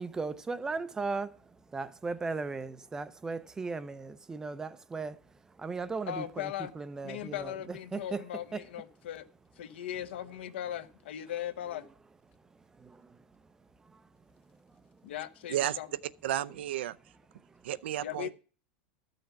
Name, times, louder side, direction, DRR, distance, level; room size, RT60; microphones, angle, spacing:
voice 1, 0.0-8.2 8.5-8.6 12.4-15.1 17.4-17.7, right 4 dB, 10° right, 0.4 m, -38 dB
voice 2, 6.1-6.7 7.0-9.2 9.6-11.9 15.0-15.9 18.0-18.3, left 11 dB, 75° left, 1.0 m, -38 dB
voice 3, 16.2-17.0 17.6-18.3, right 12 dB, 75° right, 0.6 m, -32 dB
13.0 x 6.5 x 5.7 m
supercardioid pair, 160°, 6 cm